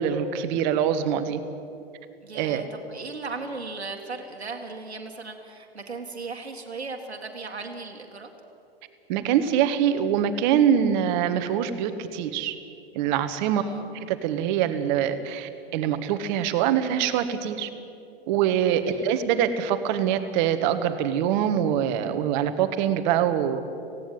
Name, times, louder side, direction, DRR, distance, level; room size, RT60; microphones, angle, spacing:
voice 1, 0.0-1.4 2.3-2.6 9.1-12.5 12.9-13.6 13.9-17.7 18.3-23.6, right 9 dB, 45° right, 10 dB, 1.6 m, -24 dB
voice 2, 2.2-8.3 13.5-13.9 18.9-19.1, right 3 dB, 90° right, 3 dB, 1.9 m, -37 dB
18.0 x 16.5 x 9.2 m, 2.6 s
hypercardioid pair, 105°, 31 cm